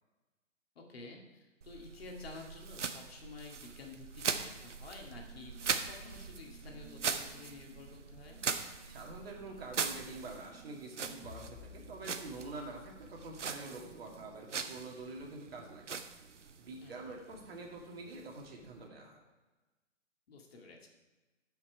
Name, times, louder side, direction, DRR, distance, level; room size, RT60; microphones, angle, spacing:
voice 1, 0.8-8.4 16.8-17.0 20.3-20.9, left 3 dB, 50° left, 1 dB, 2.0 m, -51 dB
sound 1, 1.6-18.9, right 6 dB, 65° right, 0.9 m, -41 dB
Brass instrument, 5.2-11.6, right 6 dB, 15° right, 0.7 m, -60 dB
voice 2, 8.9-15.8 16.6-19.2, right 2 dB, 50° right, 0 dB, 2.2 m, -46 dB
sound 2, 11.2-14.6, left 6 dB, 70° left, 1.1 m, -55 dB
12.5 x 5.9 x 4.7 m, 1.2 s
figure-of-eight pair, 130°, 38 cm